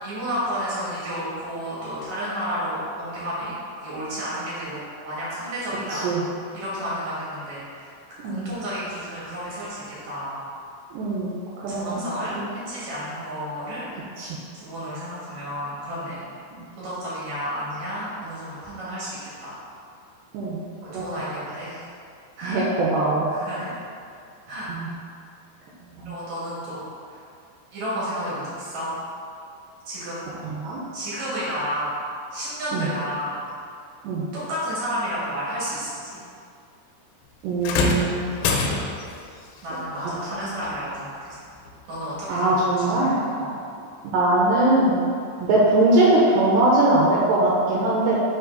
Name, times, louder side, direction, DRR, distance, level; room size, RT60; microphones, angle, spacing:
voice 1, 0.0-3.5 3.8-6.3 6.5-10.4 11.7-12.4 12.7-13.9 14.5-16.2 16.8-19.5 20.8-21.9 22.4-22.6 23.3-23.8 24.5-24.7 26.0-26.8 27.1-27.2 27.7-28.9 29.9-30.4 30.9-32.0 32.3-33.4 34.3-36.2 39.6-41.4 41.9-43.5, equal, 55° right, -9 dB, 2.2 m, -31 dB
voice 2, 5.9-6.2 8.2-8.4 10.9-12.0 12.3-12.5 14.2-14.4 16.5-16.7 20.3-20.6 20.9-21.0 22.4-23.3 24.7-24.9 25.9-26.2 30.4-30.8 32.7-32.9 34.0-34.3 37.4-38.3 40.0-40.4 42.3-43.2 44.0-45.0 45.4-48.2, right 2 dB, 85° right, -5 dB, 2.5 m, -21 dB
sound 1, 37.6-39.2 40.6-40.8 41.7-41.8, left 3 dB, 85° left, 3.2 m, -25 dB
6.3 x 5.6 x 3.9 m, 2.4 s
omnidirectional pair, 5.8 m